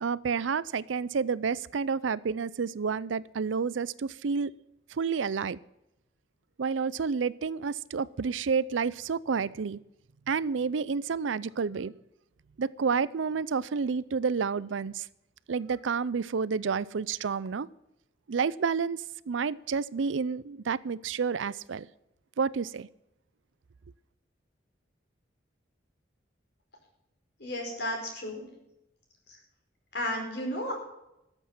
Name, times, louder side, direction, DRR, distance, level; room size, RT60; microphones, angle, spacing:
voice 1, 0.0-4.5 5.0-5.6 6.6-9.8 10.3-11.9 12.6-15.0 15.5-17.7 18.3-19.0 19.3-21.9 22.4-22.9, right 5 dB, 85° right, 20 dB, 0.5 m, -29 dB
voice 2, 27.4-28.5 29.9-30.7, left 1 dB, 60° left, 1 dB, 5.0 m, -33 dB
13.0 x 8.0 x 7.3 m, 0.88 s
head